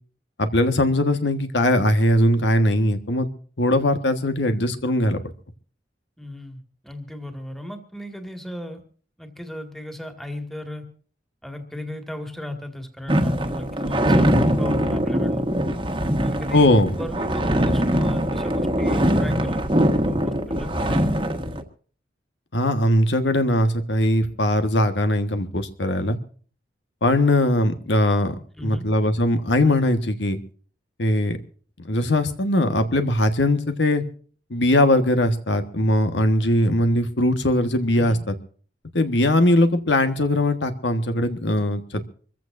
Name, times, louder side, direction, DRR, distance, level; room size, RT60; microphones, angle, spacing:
voice 1, 0.4-3.3 3.6-5.2 16.5-16.9 22.5-26.2 27.0-28.3 28.6-30.4 31.0-31.4 31.8-34.0 34.5-38.3 38.9-42.1, left 1 dB, 80° left, 8 dB, 1.5 m, -20 dB
voice 2, 6.2-8.8 9.2-10.9 11.4-15.5 16.0-16.7 16.9-19.6 20.1-21.1 28.5-28.9 37.9-38.2, left 1 dB, ahead, 5 dB, 2.0 m, -35 dB
sound 1, 13.1-21.6, equal, 30° right, 1.4 m, -22 dB
25.0 x 15.0 x 2.6 m, 0.43 s
head